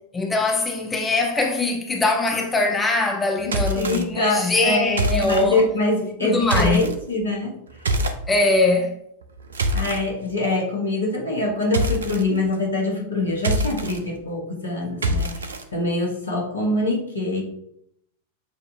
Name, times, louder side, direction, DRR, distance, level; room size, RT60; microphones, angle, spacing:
voice 1, 0.1-5.7 6.2-6.8 8.3-8.9, left 2 dB, 15° left, 0.5 m, -22 dB
sound 1, 3.4-4.0 4.9-5.4 6.4-6.9 7.8-8.2 9.2-10.0 11.7-12.2 13.3-14.0 15.0-15.6, right 1 dB, 70° right, 0.4 m, -24 dB
voice 2, 3.5-7.5 9.7-15.4 15.7-17.4, left 2 dB, 75° left, 1.2 m, -24 dB
6.4 x 2.6 x 2.8 m
figure-of-eight pair, 90°, 0 cm